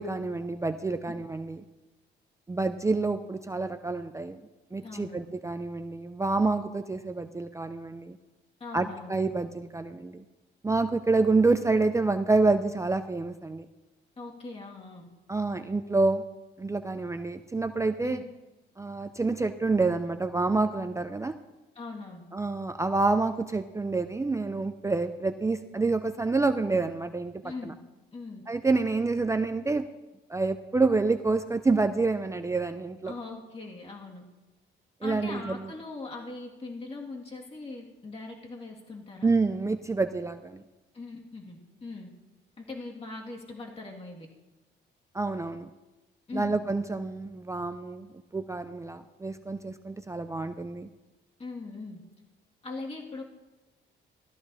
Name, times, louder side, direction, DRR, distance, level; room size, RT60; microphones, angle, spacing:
voice 1, 0.0-1.6 2.5-4.4 4.7-8.2 8.7-10.2 10.6-13.6 15.3-16.2 16.6-18.2 18.8-21.4 22.3-27.7 28.5-29.9 30.3-33.1 35.0-35.7 39.2-40.6 45.1-45.7 46.3-48.1 48.3-50.9, right 3 dB, 15° right, 8 dB, 0.5 m, -28 dB
voice 2, 4.8-5.2 8.6-9.1 14.2-15.1 18.0-18.2 21.7-22.3 27.4-27.8 28.1-28.4 33.0-34.2 35.0-39.3 40.9-42.1 42.6-44.3 46.3-46.6 51.4-52.0 52.6-53.2, left 3 dB, 30° left, -2 dB, 2.0 m, -40 dB
18.5 x 13.0 x 2.7 m, 1.1 s
cardioid pair, 90°, 20 cm